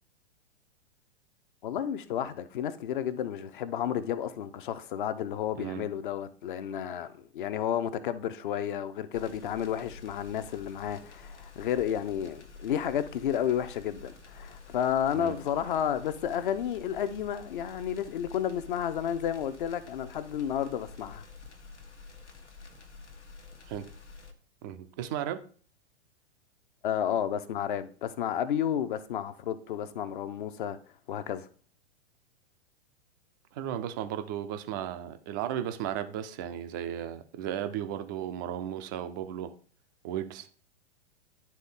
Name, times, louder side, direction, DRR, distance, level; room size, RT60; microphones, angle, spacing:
voice 1, 1.6-21.3 26.8-30.8 31.1-31.5, left 9 dB, 45° left, 0.7 m, -31 dB
sound 1, 9.1-24.3, left 4 dB, 80° left, 1.2 m, -49 dB
voice 2, 24.6-25.4 33.5-39.5 40.0-40.5, right 10 dB, 20° right, 0.3 m, -35 dB
10.5 x 3.7 x 3.6 m
figure-of-eight pair, 105°, 34 cm